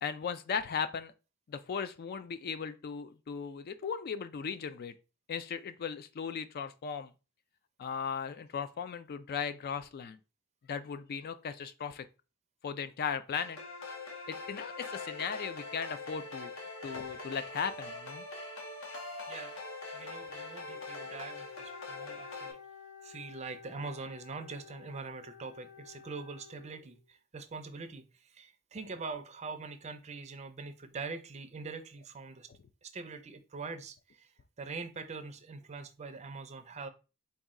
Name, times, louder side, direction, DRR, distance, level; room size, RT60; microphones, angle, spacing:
voice 1, 0.0-1.1 1.5-4.9 5.3-7.1 7.8-10.2 10.7-12.1 12.6-13.6 14.3-16.5 16.8-18.2, left 6 dB, 45° left, 0.3 m, -37 dB
sound 1, 13.3-22.5, left 3 dB, 60° left, 1.0 m, -43 dB
voice 2, 19.9-22.6 23.0-32.5 32.8-34.3 34.6-36.9, right 4 dB, 30° right, 0.5 m, -43 dB
Wind instrument woodwind instrument, 20.7-27.0, left 6 dB, 90° left, 0.7 m, -53 dB
4.1 x 2.3 x 3.6 m
head